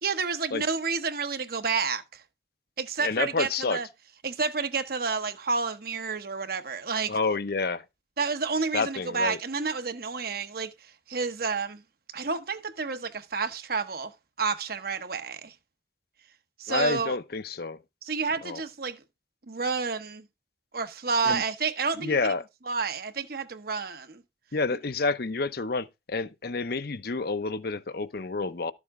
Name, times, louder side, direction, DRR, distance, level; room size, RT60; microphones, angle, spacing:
voice 1, 0.0-2.2 2.8-3.9 4.2-7.2 8.2-10.7 11.1-11.8 12.1-14.1 14.4-15.5 16.6-17.2 18.0-19.0 19.5-20.3 20.7-22.3 22.7-24.2, right 4 dB, 55° right, 1.0 m, -30 dB
voice 2, 3.0-3.8 7.1-7.8 8.7-9.4 16.7-17.8 18.4-18.6 21.2-21.4 22.0-22.5 24.5-28.7, left 3 dB, 60° left, 0.8 m, -29 dB
12.5 x 7.1 x 3.6 m
head